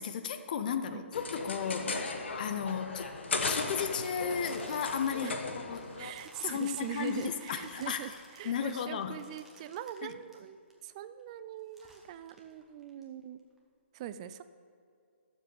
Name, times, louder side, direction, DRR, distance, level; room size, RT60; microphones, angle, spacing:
voice 1, 0.0-2.0 2.4-3.1 3.4-5.9 6.4-8.2 8.4-9.2 10.0-10.2, left 7 dB, 40° left, 9 dB, 0.8 m, -34 dB
sound 1, 1.1-6.1, left 3 dB, 65° left, 1.2 m, -36 dB
sound 2, 3.4-10.7 11.2-11.3 11.7-13.0 13.6-13.7, right 1 dB, 5° right, 1.3 m, -54 dB
voice 2, 6.0-13.4 13.9-14.4, right 11 dB, 30° right, 13 dB, 0.4 m, -42 dB
12.5 x 7.3 x 5.3 m, 2.3 s
figure-of-eight pair, 135°, 7 cm